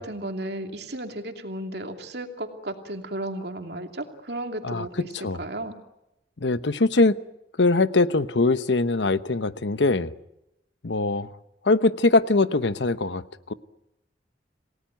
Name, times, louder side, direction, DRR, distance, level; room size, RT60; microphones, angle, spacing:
voice 1, 0.0-5.7, right 1 dB, 60° right, 4 dB, 2.8 m, -34 dB
voice 2, 4.6-5.4 6.4-7.2 7.6-10.1 10.8-11.3 11.6-13.5, left 3 dB, 75° left, 13 dB, 0.9 m, -22 dB
28.0 x 18.0 x 9.3 m, 0.88 s
head